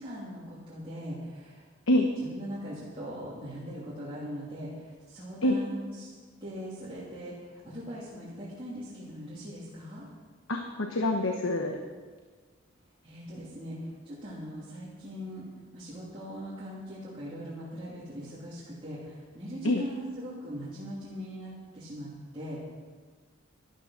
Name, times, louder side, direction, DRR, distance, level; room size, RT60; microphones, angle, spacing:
voice 1, 0.0-1.6 2.3-6.1 6.4-10.1 13.0-15.4 15.7-22.7, equal, 25° right, -10 dB, 3.1 m, -40 dB
voice 2, 10.5-11.8 19.6-19.8, left 1 dB, 80° left, 4 dB, 1.1 m, -26 dB
13.0 x 12.0 x 5.9 m, 1.5 s
head